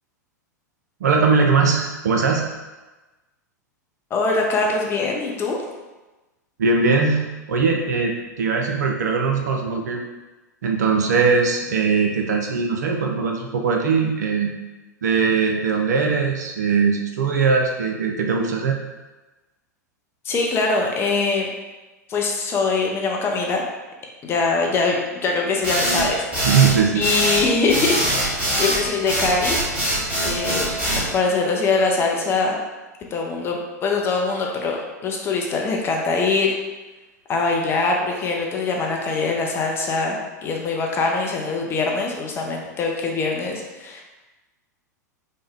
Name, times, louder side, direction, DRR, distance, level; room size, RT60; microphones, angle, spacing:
voice 1, 1.0-2.4 6.6-7.2 7.5-10.0 10.6-14.5 15.0-18.8 26.4-27.1, right 5 dB, 65° right, 2 dB, 0.4 m, -20 dB
voice 2, 4.1-5.6 20.2-21.5 22.1-23.6 24.2-26.5 26.9-29.6 30.2-32.6 33.1-36.6 37.3-44.0, left 3 dB, 25° left, 0 dB, 0.5 m, -23 dB
sound 1, 25.6-31.1, right 1 dB, 10° right, 1.1 m, -22 dB
3.2 x 2.1 x 3.5 m, 1.1 s
figure-of-eight pair, 95°, 10 cm